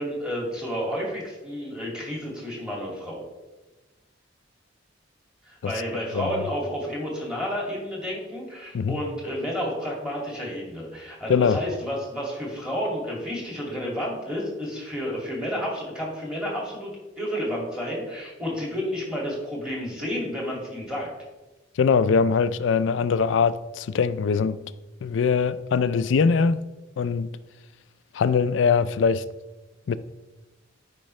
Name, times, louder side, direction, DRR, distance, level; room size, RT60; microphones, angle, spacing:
voice 1, 0.0-3.2 5.4-16.9 17.2-21.1, equal, 5° right, 2.3 m, -31 dB
voice 2, 21.8-24.6 25.0-26.6 27.0-27.3 28.1-29.2 29.9-30.0, left 5 dB, 70° left, 0.4 m, -22 dB
12.0 x 5.2 x 3.2 m
head